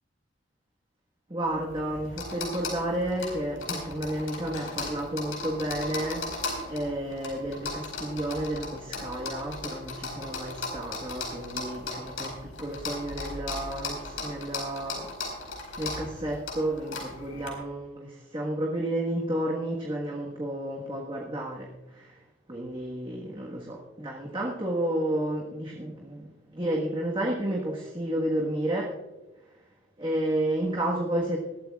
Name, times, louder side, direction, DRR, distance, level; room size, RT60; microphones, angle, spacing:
voice 1, 1.3-22.2 22.5-26.3 26.5-28.9 30.0-31.4, right 1 dB, 25° right, -2 dB, 1.4 m, -31 dB
sound 1, 1.5-17.5, left 3 dB, 85° left, 4.9 m, -37 dB
21.0 x 13.5 x 2.4 m, 1.1 s
head